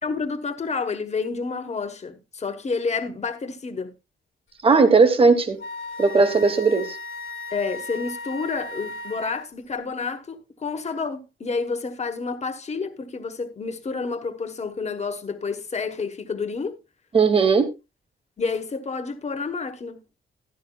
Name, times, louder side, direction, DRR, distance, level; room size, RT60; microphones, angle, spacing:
voice 1, 0.0-3.9 7.5-16.8 18.4-20.0, left 4 dB, 35° left, 1.1 m, -29 dB
voice 2, 4.6-5.6 6.0-7.0 17.1-17.7, right 4 dB, 25° right, 1.0 m, -17 dB
Wind instrument woodwind instrument, 5.6-9.5, left 2 dB, 70° left, 1.4 m, -36 dB
13.5 x 11.5 x 2.3 m
wide cardioid pair, 165°, 21 cm